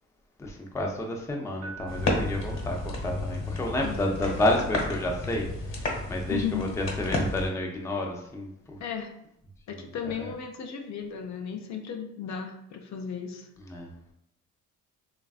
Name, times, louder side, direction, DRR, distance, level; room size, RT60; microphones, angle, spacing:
voice 1, 0.4-8.8 10.0-10.3 13.7-13.9, left 1 dB, 10° left, 1 dB, 0.4 m, -30 dB
Piano, 1.6-3.7, right 5 dB, 85° right, 0.6 m, -48 dB
sound 1, 1.9-7.5, left 2 dB, 45° left, 1.1 m, -31 dB
voice 2, 6.3-6.6 8.8-9.1 9.7-13.5, left 7 dB, 65° left, 3 dB, 0.6 m, -35 dB
3.2 x 2.4 x 2.3 m, 0.76 s
cardioid pair, 90°, 30 cm